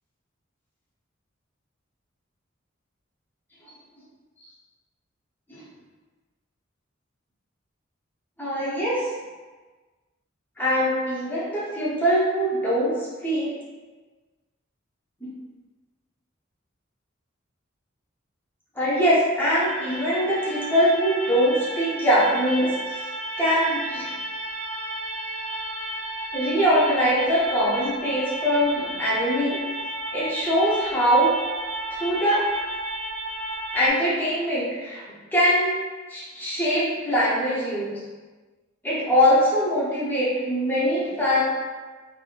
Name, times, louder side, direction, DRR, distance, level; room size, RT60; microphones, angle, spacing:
voice 1, 8.4-9.1 10.6-12.9 13.2-13.5 15.2-15.3 18.8-23.0 23.4-24.1 26.3-29.6 30.1-31.3 31.9-32.4 33.7-35.0 35.3-35.7 36.1-38.0 38.8-41.4, equal, 10° left, -9 dB, 0.7 m, -22 dB
sound 1, 19.6-33.9, right 1 dB, 30° right, 1.1 m, -33 dB
3.3 x 2.6 x 2.5 m, 1.3 s
head